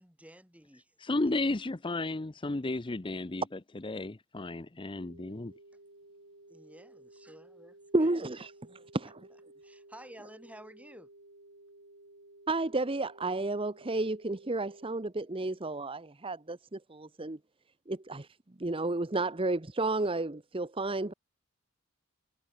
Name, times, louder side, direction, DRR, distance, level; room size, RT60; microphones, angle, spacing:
voice 1, 0.0-1.0 6.5-8.3 9.0-9.1 9.6-11.1, right 1 dB, 5° right, 4.5 m, -52 dB
voice 2, 1.0-3.4 3.8-5.5, left 2 dB, 20° left, 0.6 m, -33 dB
sound 1, 5.0-15.0, right 2 dB, 60° right, 3.3 m, -56 dB
voice 3, 7.9-8.5 8.9-9.1 12.5-17.4 17.9-18.3 18.6-21.1, right 2 dB, 25° right, 0.9 m, -31 dB
head